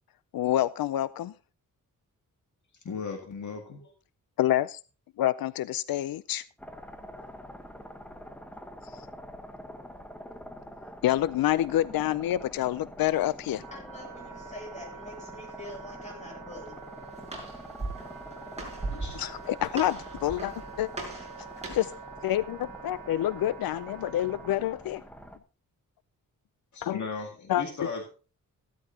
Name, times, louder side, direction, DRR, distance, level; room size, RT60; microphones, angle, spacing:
voice 1, 0.3-1.3 4.4-4.8 5.2-6.4 11.0-13.6 19.1-20.9 21.7-21.9 22.2-25.0 26.8-27.0 27.5-27.6, left 13 dB, 85° left, 0.5 m, -27 dB
voice 2, 2.8-3.9 18.9-19.2 26.7-28.1, left 5 dB, 55° left, 2.1 m, -36 dB
sound 1, 6.6-25.4, equal, 5° left, 1.1 m, -46 dB
Wind instrument woodwind instrument, 13.0-24.6, right 6 dB, 65° right, 2.2 m, -46 dB
voice 3, 13.7-16.8, left 1 dB, 20° left, 7.5 m, -45 dB
Walk footsteps, 16.7-22.0, right 2 dB, 20° right, 5.1 m, -40 dB
15.0 x 12.5 x 2.8 m
wide cardioid pair, 155°, 34 cm